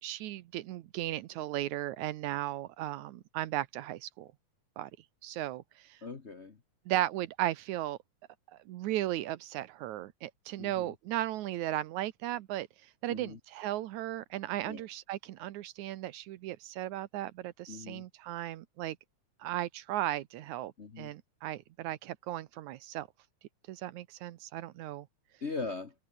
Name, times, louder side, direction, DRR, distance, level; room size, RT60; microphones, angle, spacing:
voice 1, 0.0-4.3 4.8-4.9 5.2-6.0 6.9-8.0 8.5-19.0 19.4-23.1 23.7-25.1, right 14 dB, 85° right, 2.3 m, -36 dB
voice 2, 6.0-6.6 10.6-10.9 13.1-13.4 14.6-14.8 17.7-18.1 20.8-21.1 25.4-25.9, left 4 dB, 50° left, 0.8 m, -40 dB
omnidirectional pair, 3.4 m